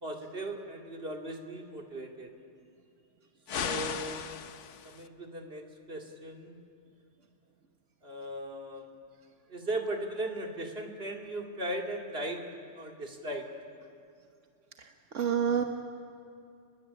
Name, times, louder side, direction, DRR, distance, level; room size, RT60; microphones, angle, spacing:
voice 1, 0.0-2.3 3.6-4.4 4.8-6.6 8.0-8.9 9.5-12.4 12.7-13.5, right 1 dB, 55° right, 2 dB, 2.7 m, -38 dB
sound 1, 3.5-5.1, left 8 dB, 75° left, 1.2 m, -36 dB
voice 2, 14.8-15.6, right 8 dB, 80° right, 4 dB, 1.6 m, -29 dB
29.0 x 21.5 x 8.7 m, 2.5 s
omnidirectional pair, 1.2 m